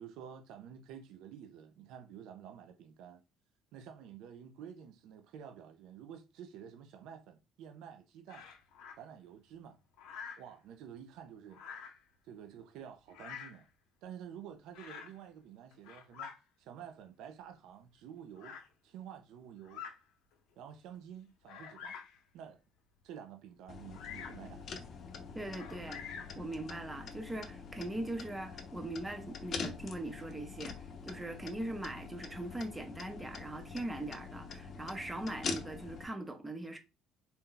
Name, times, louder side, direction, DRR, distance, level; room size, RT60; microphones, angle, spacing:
voice 1, 0.0-3.2 3.7-8.5 9.0-9.8 10.4-11.6 12.2-13.7 14.0-16.3 16.6-18.6 18.8-19.9 20.6-22.0 22.3-22.6 23.0-24.9, right 8 dB, 75° right, 0.5 m, -50 dB
Bird vocalization bird call bird song, 8.3-9.0 10.0-10.5 11.5-12.0 13.1-13.6 14.7-15.2 15.7-16.4 17.2-17.3 18.4-18.7 19.6-20.0 20.6-20.7 21.4-22.2 23.9-24.5 25.5-26.4, left 7 dB, 80° left, 0.7 m, -47 dB
sound 1, 23.7-36.0, left 5 dB, 45° left, 0.7 m, -45 dB
voice 2, 25.3-30.8 31.0-36.8, right 1 dB, 10° right, 0.7 m, -41 dB
4.0 x 2.2 x 3.8 m
cardioid pair, 120°, 0 cm